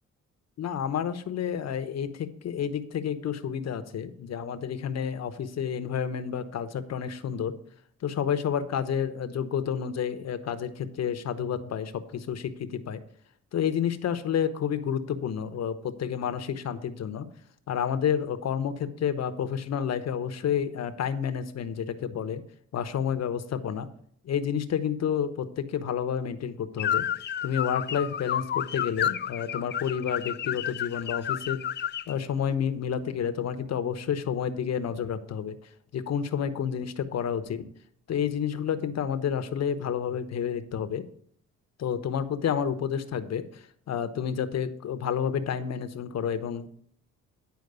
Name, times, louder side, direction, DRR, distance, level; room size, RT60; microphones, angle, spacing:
voice 1, 0.6-7.5 8.0-13.0 13.5-17.3 17.7-22.4 22.7-23.9 24.2-27.1 27.4-31.6 32.1-35.6 35.9-37.7 38.1-41.0 41.8-46.7, left 8 dB, 60° left, 10 dB, 1.0 m, -30 dB
sound 1, 26.8-32.1, left 10 dB, 35° left, 0.4 m, -30 dB
10.5 x 4.5 x 6.8 m, 0.62 s
cardioid pair, 90°, 30 cm